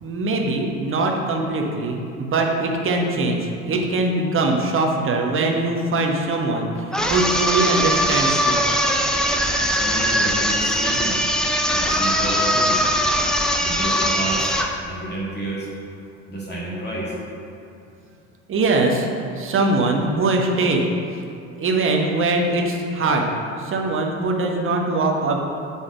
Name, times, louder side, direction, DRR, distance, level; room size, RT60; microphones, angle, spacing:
voice 1, 0.0-3.4 3.7-6.7 7.1-8.6 18.5-19.1 19.4-20.8 21.6-23.3 23.6-25.4, right 2 dB, 30° right, 1 dB, 1.3 m, -21 dB
sound 1, 6.9-14.8, equal, ahead, 0.7 m, -21 dB
voice 2, 9.7-11.2 11.7-12.8 13.6-14.5 14.8-15.7 16.3-17.2, right 1 dB, 25° left, -6 dB, 1.9 m, -30 dB
8.6 x 4.2 x 6.2 m, 2.5 s
figure-of-eight pair, 60°, 40 cm